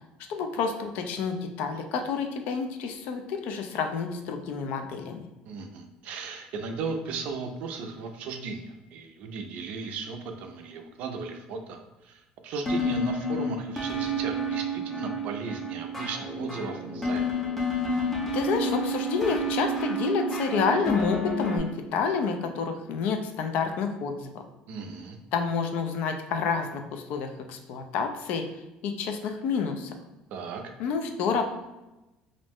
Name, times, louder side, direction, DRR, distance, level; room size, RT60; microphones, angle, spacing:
voice 1, 0.3-5.3 18.3-24.3 25.3-28.4 28.8-29.9 30.8-31.4, left 5 dB, 65° left, 5 dB, 0.4 m, -29 dB
voice 2, 5.4-17.2 24.7-25.2 30.3-30.7, right 4 dB, 60° right, 5 dB, 0.4 m, -36 dB
sound 1, 12.7-21.6, equal, 10° left, 0.5 m, -30 dB
2.5 x 2.1 x 3.4 m, 1.0 s
cardioid pair, 155°, 3 cm